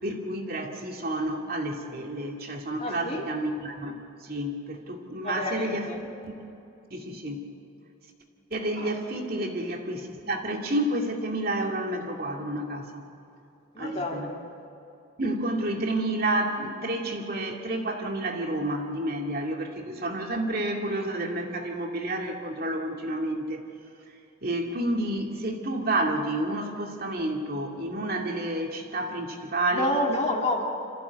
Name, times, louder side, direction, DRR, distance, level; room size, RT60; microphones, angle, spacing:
voice 1, 0.0-6.3 6.9-7.5 8.5-13.1 13.8-14.3 15.2-23.6 24.4-29.9, right 1 dB, 50° right, 1 dB, 2.5 m, -30 dB
voice 2, 2.8-3.3 5.2-6.0 8.8-8.9 13.7-14.4 29.7-30.6, left 1 dB, 30° left, 1 dB, 2.4 m, -29 dB
26.0 x 15.0 x 8.3 m, 2.7 s
head